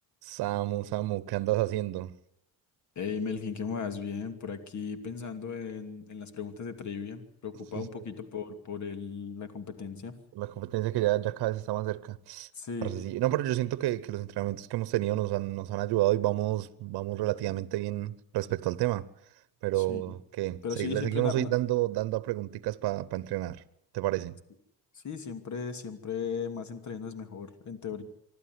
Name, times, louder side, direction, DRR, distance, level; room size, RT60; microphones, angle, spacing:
voice 1, 0.2-2.1 7.8-7.9 10.3-12.5 12.8-19.1 19.6-23.6 23.9-24.4, right 16 dB, 70° right, 1.0 m, -30 dB
voice 2, 3.0-10.2 12.5-12.9 19.8-20.0 20.6-21.5 24.9-28.0, left 6 dB, 45° left, 2.7 m, -36 dB
25.0 x 12.0 x 9.4 m
cardioid pair, 110°, 40 cm